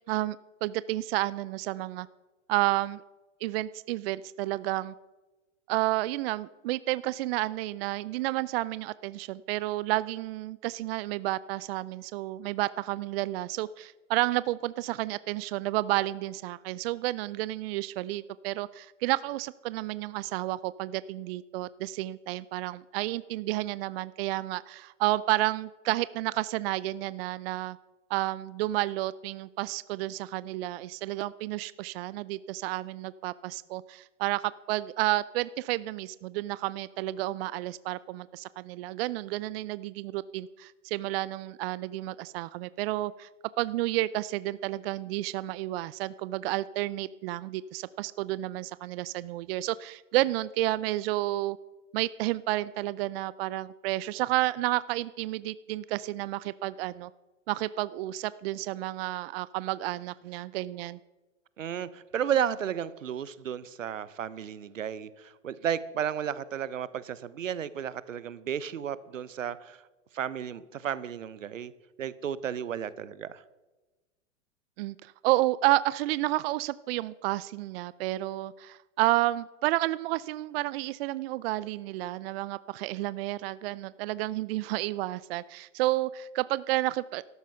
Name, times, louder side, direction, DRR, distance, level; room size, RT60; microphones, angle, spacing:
voice 1, 0.6-2.1 2.5-3.0 3.4-4.9 5.7-27.8 28.1-43.3 43.6-51.6 51.9-57.1 57.5-61.0 74.8-87.2, right 17 dB, 50° right, 18 dB, 0.5 m, -31 dB
voice 2, 61.6-69.8 70.1-71.7 72.0-73.4, right 9 dB, 85° right, 17 dB, 1.0 m, -33 dB
14.0 x 13.0 x 5.7 m, 1.2 s
hypercardioid pair, 105°, 38 cm